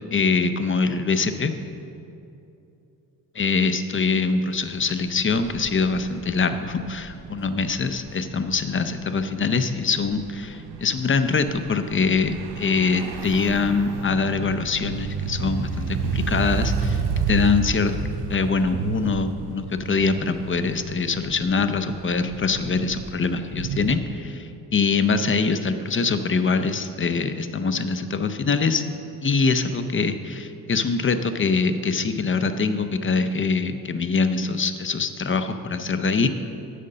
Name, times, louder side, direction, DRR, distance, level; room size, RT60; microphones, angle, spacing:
voice 1, 0.1-1.5 3.4-17.0 17.3-18.0 18.3-28.8 29.2-36.3, left 4 dB, 30° left, 10 dB, 0.6 m, -23 dB
sound 1, 4.5-24.0, right 5 dB, 65° right, 0.7 m, -32 dB
8.2 x 5.1 x 6.6 m, 2.8 s
supercardioid pair, 55°, 43 cm